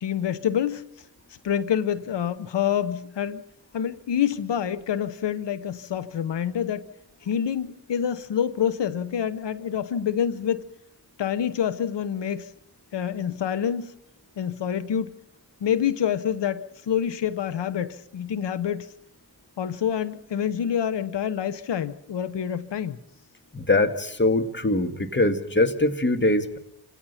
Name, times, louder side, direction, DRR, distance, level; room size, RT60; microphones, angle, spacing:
voice 1, 0.0-1.0 1.4-3.4 3.7-6.9 7.2-10.6 11.2-12.5 12.9-13.9 14.4-15.1 15.6-18.9 19.6-23.0, left 9 dB, 90° left, 0.9 m, -27 dB
voice 2, 23.5-26.6, left 2 dB, 25° left, 2.1 m, -22 dB
28.5 x 17.5 x 5.7 m
cardioid pair, 60°, 42 cm